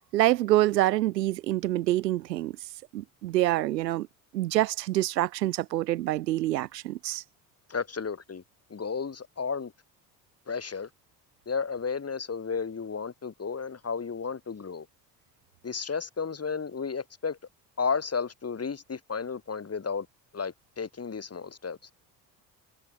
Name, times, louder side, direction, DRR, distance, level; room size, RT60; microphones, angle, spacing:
voice 1, 0.0-2.6 2.9-4.1 4.3-7.2, right 15 dB, 80° right, 0.7 m, -26 dB
voice 2, 7.7-8.4 8.7-9.7 10.5-10.9 11.5-14.9 15.6-17.4 17.8-20.1 20.3-21.9, left 5 dB, 30° left, 4.4 m, -33 dB
figure-of-eight pair, 50°, 49 cm